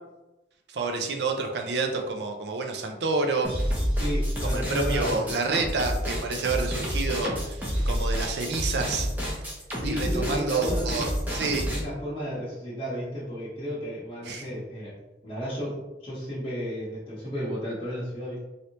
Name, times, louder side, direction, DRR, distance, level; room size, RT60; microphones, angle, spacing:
voice 1, 0.7-3.5 4.4-9.4 9.8-11.6 14.2-14.5, right 3 dB, 70° right, 3 dB, 0.5 m, -29 dB
sound 1, 3.4-11.8, equal, 10° right, 0.7 m, -29 dB
voice 2, 3.9-5.4 9.8-11.1 11.7-14.9 15.2-15.7 16.0-18.4, equal, 30° left, -11 dB, 0.8 m, -33 dB
3.2 x 2.7 x 2.8 m, 1.0 s
head